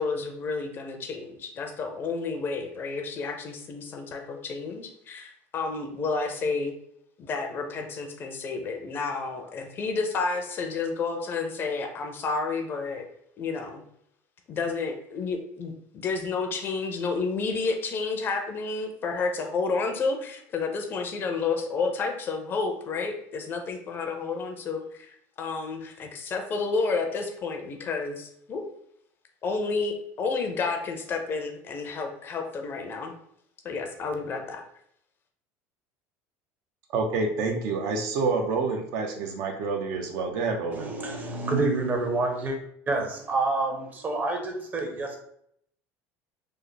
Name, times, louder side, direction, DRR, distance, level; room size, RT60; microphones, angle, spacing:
voice 1, 0.0-6.7 7.2-13.1 13.4-13.8 14.5-28.6 29.4-33.1 33.6-34.6, left 4 dB, 35° left, 4 dB, 0.5 m, -30 dB
voice 2, 36.9-40.9, right 4 dB, 65° right, 3 dB, 0.6 m, -28 dB
voice 3, 40.7-42.6 42.9-45.2, right 3 dB, 25° right, 3 dB, 0.7 m, -28 dB
3.3 x 2.1 x 3.8 m, 0.70 s
cardioid pair, 140°, 7 cm